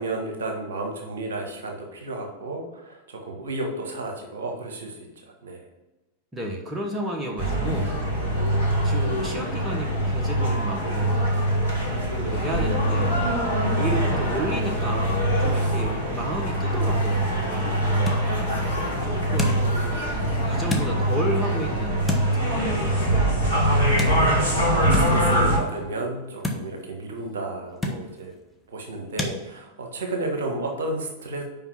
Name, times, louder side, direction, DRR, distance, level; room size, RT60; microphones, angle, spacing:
voice 1, 0.0-5.6 23.7-28.3 28.7-31.4, right 2 dB, 65° right, 2 dB, 1.4 m, -32 dB
voice 2, 6.3-8.0 8.8-11.3 11.9-13.2 13.7-18.2 19.0-23.6 24.0-24.4, right 1 dB, 15° right, 0 dB, 1.3 m, -32 dB
sound 1, 7.4-25.6, right 1 dB, 90° left, 1.8 m, -23 dB
sound 2, 17.8-29.4, left 1 dB, 5° left, 1.0 m, -35 dB
5.6 x 5.3 x 5.9 m, 1.1 s
figure-of-eight pair, 90°, 0 cm